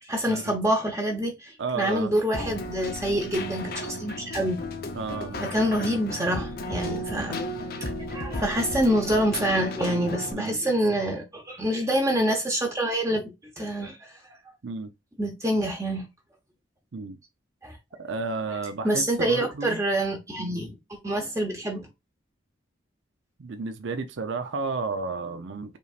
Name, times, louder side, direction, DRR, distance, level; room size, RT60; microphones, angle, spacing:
voice 1, 0.1-4.6 5.4-7.4 7.8-14.2 15.2-16.1 17.6-17.8 18.8-21.9, right 1 dB, 15° right, 0.9 m, -26 dB
voice 2, 1.6-2.1 4.9-5.4 7.1-7.4 10.3-10.6 14.6-14.9 16.9-17.2 18.0-19.8 20.4-20.6 23.4-25.8, right 4 dB, 65° right, 0.5 m, -32 dB
Keyboard (musical), 2.3-10.3, left 1 dB, 50° left, 0.7 m, -34 dB
5.2 x 3.3 x 2.4 m
head